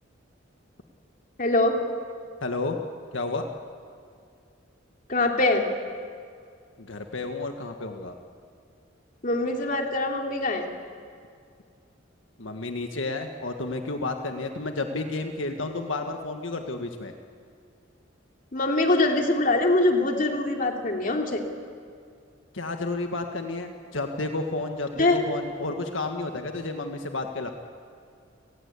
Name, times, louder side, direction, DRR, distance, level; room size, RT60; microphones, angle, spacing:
voice 1, 1.4-1.8 5.1-5.6 9.2-10.7 18.5-21.4 25.0-25.2, left 2 dB, 45° left, 2 dB, 2.8 m, -23 dB
voice 2, 2.4-2.8 3.1-3.4 6.8-8.1 12.4-17.1 22.5-27.5, left 2 dB, 85° left, 4 dB, 1.7 m, -31 dB
30.0 x 19.5 x 8.5 m, 2.3 s
head